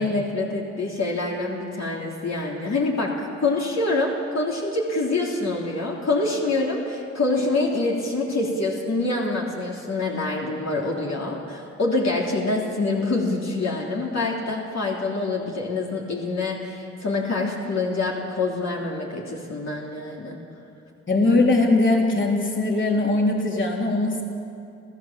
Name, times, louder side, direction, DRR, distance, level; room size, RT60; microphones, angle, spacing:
voice 1, 0.0-20.4, left 2 dB, 65° left, -3 dB, 3.3 m, -26 dB
voice 2, 21.1-24.2, left 2 dB, 40° left, -1 dB, 3.6 m, -20 dB
28.0 x 16.0 x 7.4 m, 2.5 s
cardioid pair, 75°, 29 cm